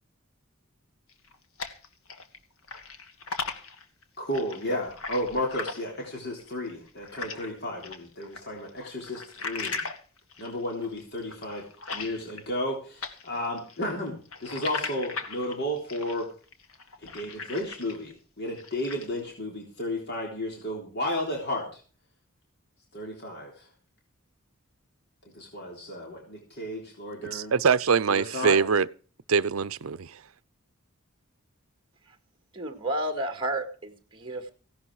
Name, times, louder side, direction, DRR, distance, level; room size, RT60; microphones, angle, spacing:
sound 1, 1.1-2.4 2.6-7.5 7.8-12.7 13.0-18.1 18.5-19.2, left 4 dB, 80° left, 1.7 m, -38 dB
voice 1, 4.2-9.8 10.4-11.7 11.9-16.3 17.0-21.7 22.9-23.7 25.3-27.5 28.1-28.6, left 1 dB, 50° left, 3.5 m, -33 dB
voice 2, 27.3-28.9 29.3-30.2, right 6 dB, 75° right, 0.6 m, -23 dB
voice 3, 32.5-34.5, right 1 dB, 25° right, 1.9 m, -32 dB
16.5 x 11.5 x 4.8 m
head